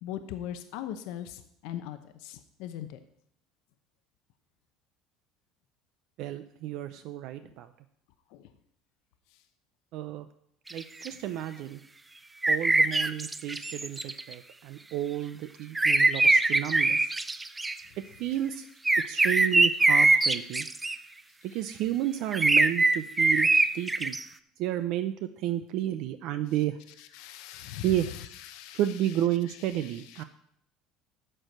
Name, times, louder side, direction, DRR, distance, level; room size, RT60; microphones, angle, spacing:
voice 1, 0.0-3.0 7.4-7.5 8.3-8.5 27.0-28.8 29.8-30.2, left 11 dB, 75° left, 8 dB, 0.8 m, -40 dB
voice 2, 6.2-7.7 9.9-10.3 10.7-11.8 12.5-17.1 18.2-18.7 19.0-20.7 21.5-23.5 23.7-24.2 24.6-26.8 27.8-28.1 28.7-30.2, right 12 dB, 65° right, 10 dB, 0.5 m, -31 dB
sound 1, 10.7-11.1 12.4-14.3 15.7-17.7 18.8-20.9 22.3-24.2, right 2 dB, 15° right, 0.4 m, -23 dB
12.0 x 4.5 x 6.4 m, 0.70 s
cardioid pair, 130°, 0 cm